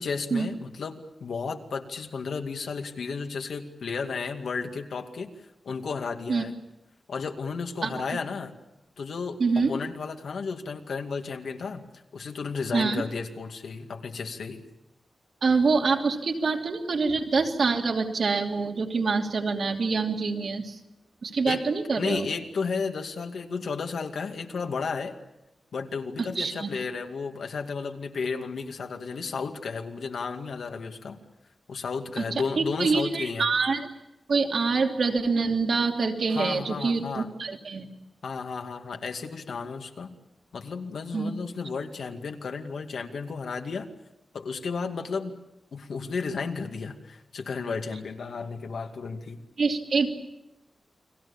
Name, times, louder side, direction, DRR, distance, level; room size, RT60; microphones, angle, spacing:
voice 1, 0.0-5.3 5.6-6.5 7.1-8.5 9.0-11.8 12.1-14.6 21.5-21.6 22.0-25.1 25.7-31.2 31.7-33.5 36.3-37.3 38.2-40.1 40.5-43.9 44.3-45.4 45.7-49.4, left 5 dB, 80° left, 4 dB, 2.3 m, -33 dB
voice 2, 9.4-9.7 12.7-13.0 15.4-20.7 21.2-22.3 26.2-26.7 32.2-33.9 34.3-37.9 41.1-41.3 49.6-50.1, right 4 dB, 60° right, 2 dB, 2.8 m, -25 dB
30.0 x 22.5 x 7.2 m, 0.93 s
wide cardioid pair, 160°, 0 cm